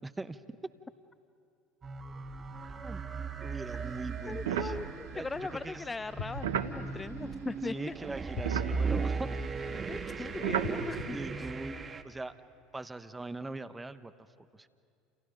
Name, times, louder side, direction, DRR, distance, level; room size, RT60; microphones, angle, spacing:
voice 1, 0.0-0.4 2.8-3.0 3.4-4.7 5.1-5.9 6.9-7.1 7.6-9.4 10.2-10.3 11.1-12.4 12.7-14.7, right 2 dB, 15° right, 12 dB, 1.1 m, -41 dB
sound 1, 1.8-12.0, right 5 dB, 30° right, 1.4 m, -37 dB
sound 2, 3.7-7.9 8.2-11.1, right 9 dB, 80° right, 1.0 m, -37 dB
voice 2, 4.3-7.9 9.9-11.2, left 3 dB, 20° left, 14 dB, 0.6 m, -39 dB
sound 3, 6.2-7.8 8.3-9.9 10.5-12.2 12.8-12.9, left 3 dB, 75° left, 2.7 m, -43 dB
30.0 x 28.5 x 5.3 m, 2.4 s
hypercardioid pair, 75°, 0 cm